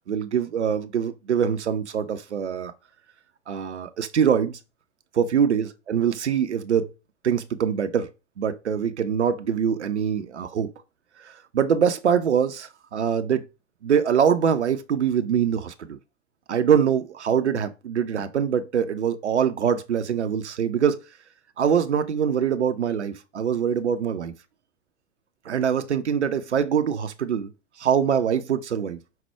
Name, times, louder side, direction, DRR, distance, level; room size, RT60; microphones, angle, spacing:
voice 1, 0.1-2.7 3.5-4.6 5.1-6.9 7.2-8.1 8.4-10.7 11.2-13.5 13.8-16.0 16.5-21.0 21.6-24.3 25.5-27.5 27.8-29.0, right 8 dB, 75° right, 0.5 m, -23 dB
5.4 x 2.1 x 4.3 m
figure-of-eight pair, 95°, 34 cm